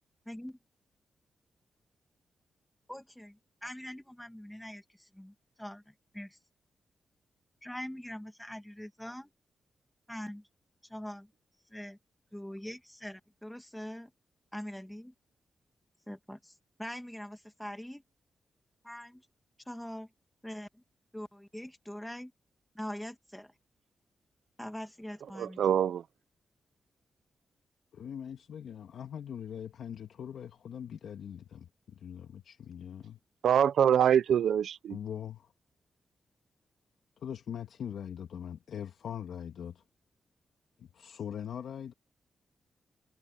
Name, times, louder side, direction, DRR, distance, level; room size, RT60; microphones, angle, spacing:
voice 1, 0.3-0.6 2.9-6.4 7.6-9.3 10.1-10.5 10.8-11.3 11.7-12.0 12.3-14.1 14.5-15.1 16.1-18.0 18.8-19.3 19.7-20.1 20.4-20.8 21.1-22.3 22.7-23.5 24.6-25.7, equal, 5° left, 2.5 m, -43 dB
voice 2, 25.4-26.0 33.4-35.0, right 9 dB, 80° right, 0.8 m, -25 dB
voice 3, 27.9-33.2 34.9-35.5 37.2-39.8 40.8-41.9, left 8 dB, 80° left, 1.8 m, -41 dB
supercardioid pair, 50°, 0 cm